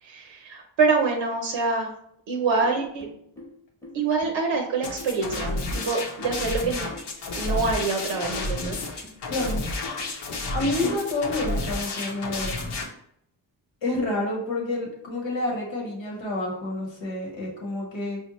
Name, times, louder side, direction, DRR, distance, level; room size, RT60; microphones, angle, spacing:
voice 1, 0.0-1.9 2.3-3.1 3.9-6.9 7.3-8.8 10.8-11.0, right 4 dB, 80° right, 2 dB, 0.7 m, -26 dB
sound 1, 2.6-10.8, left 1 dB, 5° left, 0.8 m, -45 dB
sound 2, 4.8-12.8, left 2 dB, 65° left, 0.8 m, -31 dB
voice 2, 9.3-9.7 10.5-12.6 13.8-18.2, left 2 dB, 90° left, -2 dB, 1.3 m, -29 dB
4.3 x 2.1 x 2.9 m, 0.70 s
cardioid pair, 65°, 45 cm